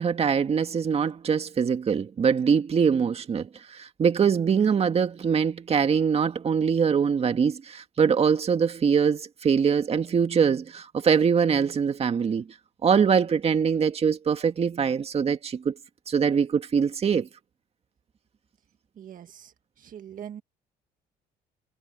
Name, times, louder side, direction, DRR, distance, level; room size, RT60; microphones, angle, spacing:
voice 1, 0.0-12.5 12.8-15.8 16.1-17.3, right 6 dB, 35° right, 2.0 m, -23 dB
voice 2, 19.0-20.4, right 9 dB, 55° right, 1.7 m, -43 dB
cardioid pair, 110°, 17 cm